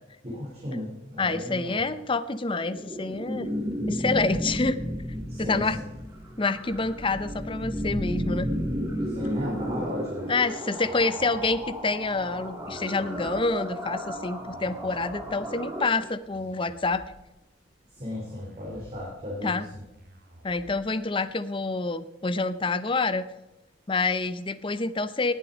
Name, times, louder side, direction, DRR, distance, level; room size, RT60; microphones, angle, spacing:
voice 1, 0.2-1.8 5.3-5.7 9.1-10.3 17.9-19.6, left 1 dB, 35° right, -4 dB, 3.2 m, -35 dB
voice 2, 1.2-3.5 3.9-4.9 5.4-5.8 6.4-8.5 10.3-17.0 19.4-19.7 20.4-23.2 23.9-25.3, left 3 dB, 30° left, 14 dB, 0.6 m, -27 dB
sound 1, 2.5-15.9, equal, 15° right, 1.8 m, -33 dB
sound 2, 5.2-21.2, equal, 55° right, 2.7 m, -52 dB
19.0 x 7.4 x 5.1 m, 0.97 s
head